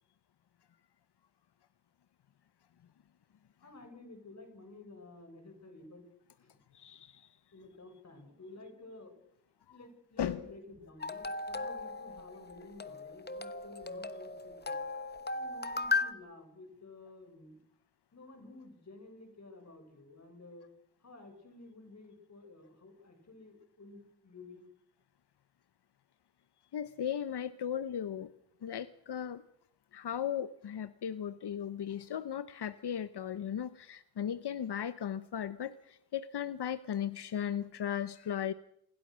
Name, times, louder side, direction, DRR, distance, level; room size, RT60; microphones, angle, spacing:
voice 1, 3.6-6.1 6.4-6.5 7.5-9.2 9.7-14.8 15.3-17.6 18.1-20.7 21.0-24.7, left 2 dB, 45° left, 5 dB, 6.4 m, -52 dB
voice 2, 6.7-7.3 10.2-10.5 26.7-28.3 28.6-29.4 29.9-38.5, left 9 dB, 90° left, 14 dB, 0.9 m, -36 dB
sound 1, 11.0-16.1, left 3 dB, 25° left, 1.1 m, -37 dB
28.5 x 21.5 x 6.3 m, 0.75 s
wide cardioid pair, 160°, 39 cm